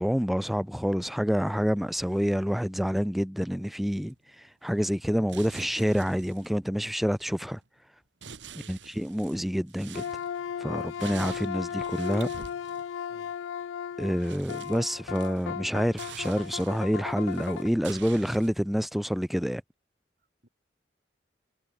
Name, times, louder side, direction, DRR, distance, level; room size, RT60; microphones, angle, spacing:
voice 1, 0.0-7.6 8.7-10.0 10.6-12.3 14.0-19.6, equal, ahead, 0.4 m, -28 dB
sound 1, 1.0-1.1 1.4-1.5 1.9-2.6 3.6-3.7 4.1-4.5 5.3-6.6 7.0-7.8 8.2-12.9 13.6-13.7 13.9-15.7 16.0-18.5, right 6 dB, 75° right, 1.7 m, -47 dB
voice 2, 8.5-8.8 13.1-13.4 20.2-20.5, right 1 dB, 55° right, 5.0 m, -58 dB
sound 2, 9.9-17.7, left 8 dB, 85° left, 0.3 m, -36 dB
head